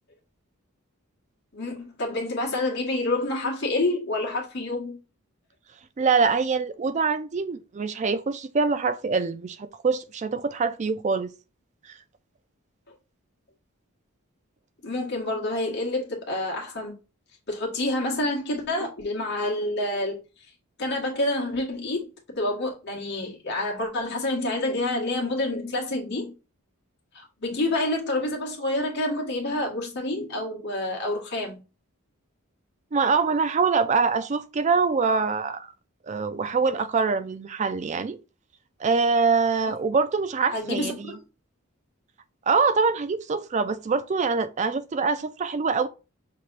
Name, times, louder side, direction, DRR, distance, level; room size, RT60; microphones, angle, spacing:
voice 1, 1.5-5.0 14.8-17.0 17.5-20.2 20.8-22.1 22.3-26.3 27.1-31.6 39.6-39.7 40.5-41.2, left 2 dB, 55° left, 1.4 m, -28 dB
voice 2, 6.0-11.3 11.9-12.0 32.9-35.7 36.1-38.2 38.8-41.2 42.5-45.9, right 4 dB, 35° right, 0.3 m, -24 dB
5.7 x 3.2 x 2.5 m
head